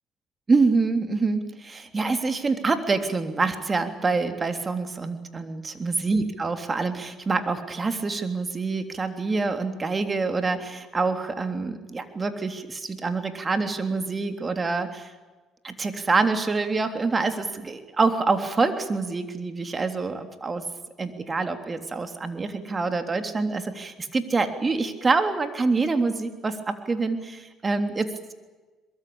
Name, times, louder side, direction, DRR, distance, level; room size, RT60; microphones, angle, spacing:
voice 1, 0.5-15.1 15.6-20.6 21.0-28.3, right 3 dB, 30° right, 8 dB, 3.3 m, -26 dB
23.0 x 22.0 x 8.8 m, 1.2 s
hypercardioid pair, 65°, 0 cm